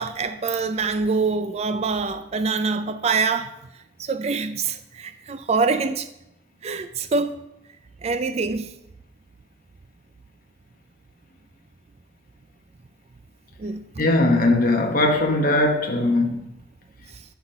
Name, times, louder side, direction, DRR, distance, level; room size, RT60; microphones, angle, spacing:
voice 1, 0.0-3.5 4.0-6.1 6.6-7.4 8.0-8.8 13.6-13.8 17.1-17.2, right 4 dB, 35° right, 0.4 m, -25 dB
voice 2, 14.0-16.4, left 2 dB, 45° left, 1.1 m, -20 dB
8.9 x 6.0 x 5.3 m
head